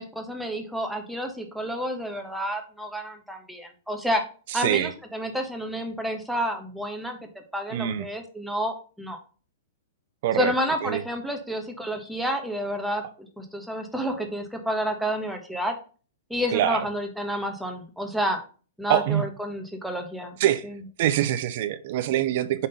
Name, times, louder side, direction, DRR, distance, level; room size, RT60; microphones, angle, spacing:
voice 1, 0.0-4.2 4.5-7.2 7.5-9.2 10.3-15.7 16.3-18.4 18.8-20.3 20.6-20.8, equal, ahead, 1.2 m, -30 dB
voice 2, 4.5-4.9 7.7-8.1 10.2-10.5 10.8-11.0 16.5-16.8 18.9-19.2 20.4-20.6 21.0-22.7, right 12 dB, 55° right, 0.6 m, -24 dB
5.4 x 3.7 x 5.5 m
hypercardioid pair, 125°, 0 cm